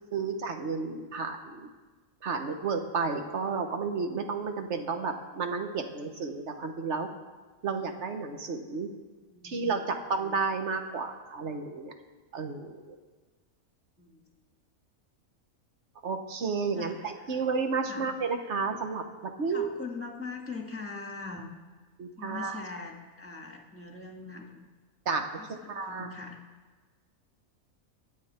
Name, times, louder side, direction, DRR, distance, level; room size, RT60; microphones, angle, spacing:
voice 1, 0.1-1.7 2.2-7.1 7.6-8.9 9.4-11.9 12.3-12.9 16.0-19.7 22.0-22.6 25.0-26.1, right 4 dB, 55° right, 5 dB, 1.5 m, -32 dB
voice 2, 9.2-9.7 14.0-14.2 16.7-17.4 17.9-18.1 19.5-21.5 22.2-24.7 25.2-26.4, left 3 dB, 10° left, 0 dB, 1.9 m, -42 dB
23.0 x 8.9 x 4.4 m, 1.3 s
omnidirectional pair, 1.5 m